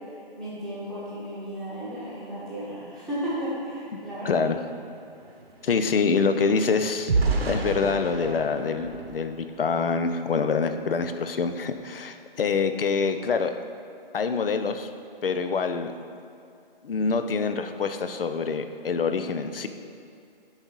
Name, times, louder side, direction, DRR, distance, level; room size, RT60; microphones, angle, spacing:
voice 1, 0.4-4.5, equal, ahead, -13 dB, 1.1 m, -34 dB
sound 1, 4.1-4.2 4.5-10.0 10.5-10.7 11.1-11.3, right 3 dB, 85° right, 1.1 m, -31 dB
voice 2, 4.2-4.6 5.6-7.1 7.5-13.5 14.1-14.9 15.2-15.9 16.8-19.7, left 5 dB, 70° left, 8 dB, 0.7 m, -25 dB
7.8 x 4.1 x 6.1 m, 2.5 s
hypercardioid pair, 165°, 30 cm